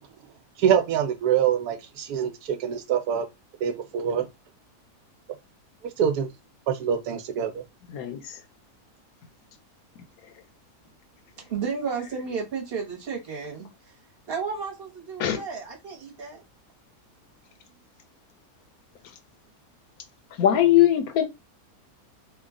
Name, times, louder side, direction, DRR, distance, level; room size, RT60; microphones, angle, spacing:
voice 1, 0.6-3.2 3.6-4.3 6.0-6.3 6.7-7.5, right 8 dB, 80° right, 1.1 m, -24 dB
voice 2, 7.9-8.4 15.2-15.4 20.4-21.3, left 12 dB, 75° left, 1.0 m, -20 dB
voice 3, 11.4-13.7 14.3-16.4, right 5 dB, 45° right, 1.1 m, -32 dB
3.1 x 2.2 x 3.6 m
omnidirectional pair, 1.6 m